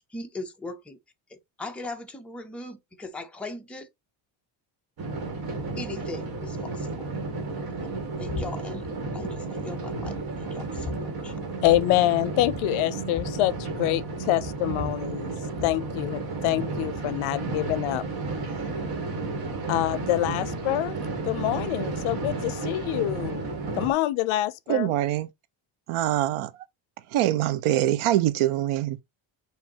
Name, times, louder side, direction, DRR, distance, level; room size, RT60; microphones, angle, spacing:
voice 1, 0.1-1.0 1.3-3.9 5.8-7.1 8.2-8.9 9.1-11.4, left 2 dB, ahead, 0.5 m, -39 dB
sound 1, 5.0-23.9, right 3 dB, 45° right, 1.6 m, -32 dB
sound 2, 8.3-8.5 8.8-9.3 9.7-9.8 10.0-11.0 11.6-11.8 12.1-12.2 12.4-14.1 14.4-15.8, left 4 dB, 25° left, 1.8 m, -38 dB
voice 2, 11.6-15.3 15.6-18.0 19.7-21.0 21.2-23.5 23.8-24.9, left 15 dB, 80° left, 0.6 m, -26 dB
voice 3, 24.7-25.3 25.9-26.6 27.1-29.0, right 13 dB, 80° right, 0.7 m, -24 dB
6.3 x 2.7 x 2.8 m
cardioid pair, 155°, 49 cm